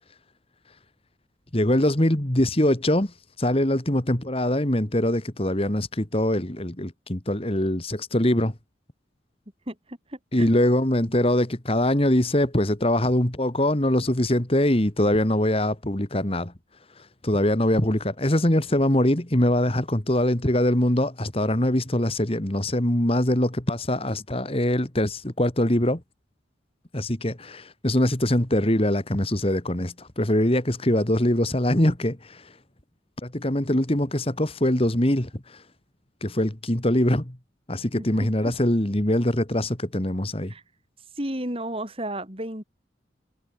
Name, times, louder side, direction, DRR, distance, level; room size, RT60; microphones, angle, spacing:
voice 1, 1.5-8.6 10.3-16.5 17.0-26.0 26.9-32.6 33.2-35.6 36.2-37.4 37.7-40.5, left 1 dB, 30° left, 2.0 m, -23 dB
voice 2, 9.7-10.5 38.0-38.1 40.5-40.6 41.2-42.6, right 1 dB, 30° right, 7.5 m, -33 dB
head